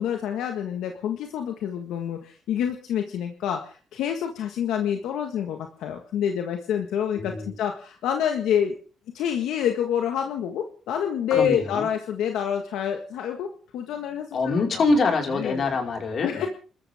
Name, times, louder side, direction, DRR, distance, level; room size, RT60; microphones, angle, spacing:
voice 1, 0.0-8.7 9.1-14.3 14.5-14.6 15.3-15.8 16.2-16.5, left 9 dB, 85° left, 5 dB, 1.6 m, -27 dB
voice 2, 7.1-7.5 11.3-11.9 14.3-16.5, left 3 dB, 50° left, 2 dB, 4.9 m, -24 dB
29.5 x 13.5 x 3.6 m, 0.40 s
cardioid pair, 90°, 0 cm